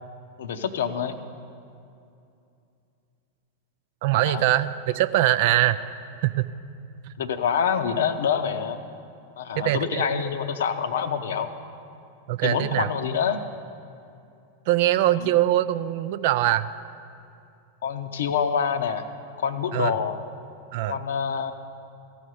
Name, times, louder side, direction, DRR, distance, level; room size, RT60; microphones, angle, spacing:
voice 1, 0.4-1.2 4.2-4.4 7.2-8.8 9.4-11.5 12.4-13.4 15.2-15.3 17.8-19.1 19.4-20.2 20.9-21.5, left 7 dB, 60° left, 9 dB, 0.7 m, -26 dB
voice 2, 4.0-5.8 6.2-6.5 9.6-10.0 12.3-12.9 14.7-16.7 19.7-19.9 20.7-21.0, right 14 dB, 50° right, 13 dB, 0.4 m, -22 dB
14.5 x 5.0 x 9.4 m, 2.6 s
figure-of-eight pair, 90°, 0 cm